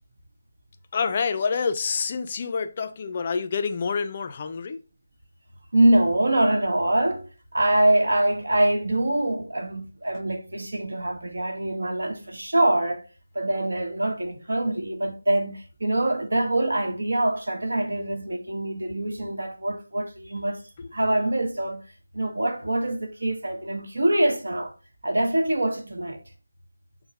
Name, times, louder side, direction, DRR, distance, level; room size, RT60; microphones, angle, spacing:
voice 1, 0.9-4.8, left 5 dB, 30° left, 0.3 m, -27 dB
voice 2, 5.7-13.0 13.3-20.6 20.9-21.8 22.1-24.7 25.0-26.2, right 1 dB, 70° right, 1.0 m, -24 dB
5.5 x 2.1 x 2.7 m
figure-of-eight pair, 165°, 0 cm